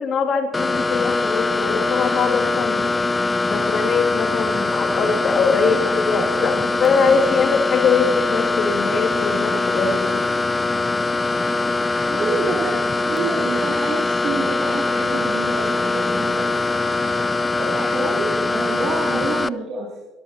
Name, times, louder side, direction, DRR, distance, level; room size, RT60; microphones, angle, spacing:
voice 1, 0.0-2.9 3.5-6.5 6.8-10.2, left 5 dB, 50° left, 5 dB, 2.1 m, -22 dB
sound 1, 0.5-19.5, left 3 dB, 20° left, 0.3 m, -22 dB
voice 2, 5.6-6.7 7.2-7.4 11.4-11.6 12.0-12.8 13.0-16.7 17.1-20.0, right 3 dB, 55° right, -5 dB, 3.0 m, -29 dB
23.0 x 14.0 x 2.8 m, 1.3 s
supercardioid pair, 75°, 0 cm